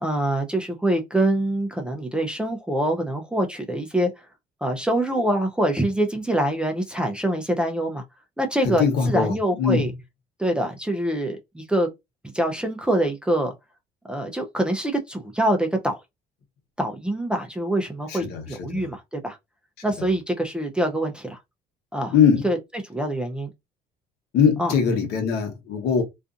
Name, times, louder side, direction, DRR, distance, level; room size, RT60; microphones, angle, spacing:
voice 1, 0.0-4.1 4.6-8.0 8.4-9.9 10.4-11.9 12.3-13.5 14.1-16.0 16.8-19.4 19.8-21.4 21.9-22.1 22.4-22.6 22.9-23.5 24.6-24.7, right 1 dB, 5° right, 0.4 m, -25 dB
voice 2, 8.6-9.9 18.1-18.8 22.1-22.4 24.3-26.0, left 6 dB, 75° left, 1.0 m, -21 dB
2.5 x 2.4 x 2.4 m
cardioid pair, 110°, 17 cm